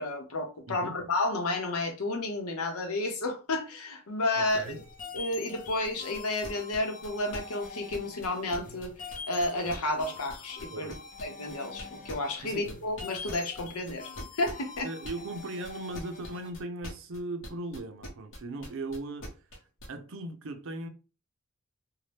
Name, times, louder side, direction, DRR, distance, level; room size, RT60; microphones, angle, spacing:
voice 1, 0.0-4.6 5.1-10.9 11.2-14.1 14.4-14.9, left 2 dB, 85° left, 0.8 m, -31 dB
voice 2, 0.7-1.0 4.3-4.8 10.7-11.0 12.4-12.7 14.8-19.5 19.9-20.9, right 2 dB, 65° right, 0.5 m, -38 dB
sound 1, 4.5-16.5, left 5 dB, 40° left, 0.6 m, -45 dB
sound 2, 5.8-19.9, equal, 65° left, 0.9 m, -43 dB
2.7 x 2.1 x 3.3 m
head